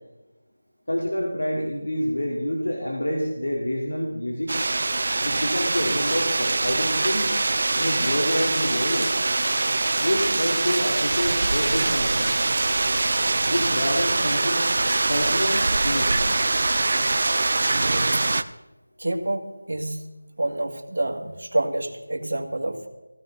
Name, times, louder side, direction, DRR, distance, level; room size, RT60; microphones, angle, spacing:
voice 1, 0.9-4.5 5.2-7.3 7.7-9.1 10.0-12.4 13.5-14.7 15.1-16.3, equal, 85° left, -2 dB, 3.8 m, -27 dB
sound 1, 4.5-18.4, right 2 dB, 40° right, 0.6 m, -23 dB
voice 2, 19.0-20.1 20.4-22.9, right 1 dB, 65° right, 3 dB, 2.2 m, -28 dB
16.5 x 16.0 x 4.1 m, 1.1 s
figure-of-eight pair, 175°, 0 cm